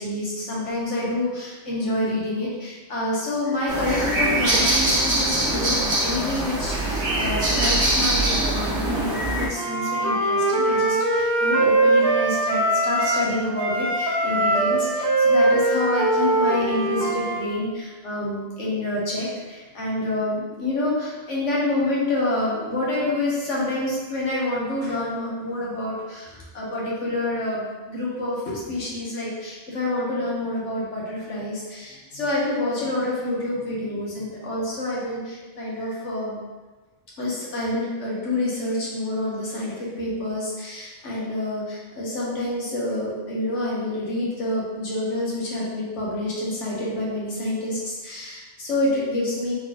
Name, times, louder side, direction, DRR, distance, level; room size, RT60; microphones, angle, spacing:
voice 1, 0.0-36.4 37.2-49.5, left 1 dB, 85° left, -5 dB, 1.5 m, -27 dB
sound 1, 3.7-9.5, right 1 dB, 55° right, 1.2 m, -23 dB
Wind instrument woodwind instrument, 9.5-13.3 13.6-17.4, right 2 dB, 70° right, 1.0 m, -21 dB
4.3 x 4.0 x 2.9 m, 1.3 s
omnidirectional pair, 1.2 m